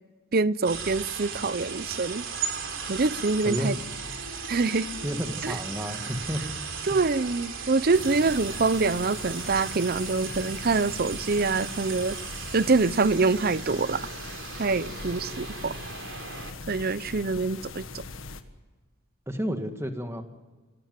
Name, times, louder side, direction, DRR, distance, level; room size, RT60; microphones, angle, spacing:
voice 1, 0.3-2.2 2.9-3.8 4.5-4.9 5.4-5.5 6.9-12.2 12.5-14.1 14.6-15.8 16.7-17.8, right 3 dB, 45° right, 0.6 m, -25 dB
sound 1, 0.6-16.5, right 6 dB, 65° right, 3.6 m, -37 dB
voice 2, 3.4-3.8 5.0-6.4 19.3-20.2, equal, 10° right, 1.8 m, -31 dB
sound 2, 7.9-18.4, left 3 dB, 70° left, 1.6 m, -41 dB
25.0 x 17.5 x 9.3 m
head